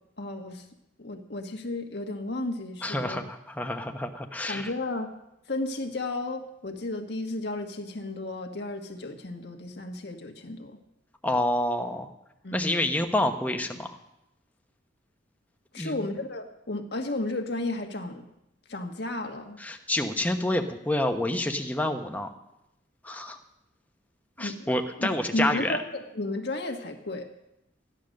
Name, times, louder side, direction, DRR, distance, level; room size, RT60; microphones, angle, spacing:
voice 1, 0.2-0.6 1.0-3.2 4.5-5.1 5.5-10.8 12.4-12.8 15.7-18.3 18.7-19.6 24.4-24.7 25.0-27.3, left 2 dB, 60° left, 4 dB, 1.5 m, -33 dB
voice 2, 2.8-4.7 11.2-12.1 12.5-14.0 15.8-16.0 19.6-22.3 23.0-23.4 24.4-25.8, left 1 dB, 10° left, 5 dB, 1.0 m, -28 dB
14.5 x 10.5 x 6.5 m, 0.86 s
head